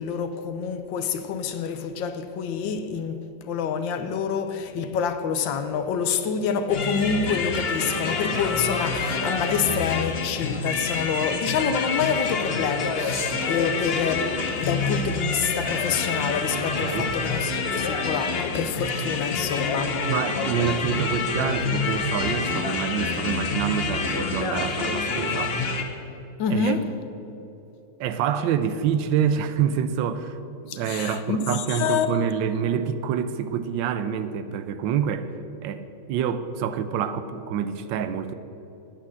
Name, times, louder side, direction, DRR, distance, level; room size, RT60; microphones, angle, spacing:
voice 1, 0.0-20.0 26.4-26.9 30.7-32.3, left 6 dB, 80° left, 1.5 m, -27 dB
sound 1, 6.7-25.8, left 4 dB, 45° left, 0.8 m, -27 dB
voice 2, 20.1-25.6 26.5-26.8 28.0-30.4 30.7-35.3 35.6-35.8 36.1-38.3, right 8 dB, 80° right, 1.3 m, -26 dB
8.5 x 8.4 x 7.6 m
omnidirectional pair, 2.0 m